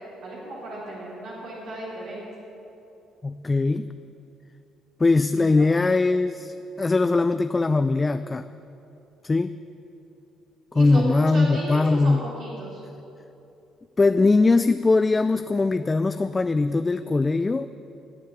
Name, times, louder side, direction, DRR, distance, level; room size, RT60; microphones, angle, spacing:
voice 1, 0.2-2.2 5.3-5.7 10.7-12.8, right 1 dB, 70° right, -6 dB, 3.7 m, -34 dB
voice 2, 3.2-3.9 5.0-8.5 9.2-9.5 10.7-12.3 14.0-17.7, left 3 dB, 25° left, 11 dB, 0.4 m, -21 dB
17.5 x 7.4 x 8.3 m, 2.9 s
supercardioid pair, 75°, 0 cm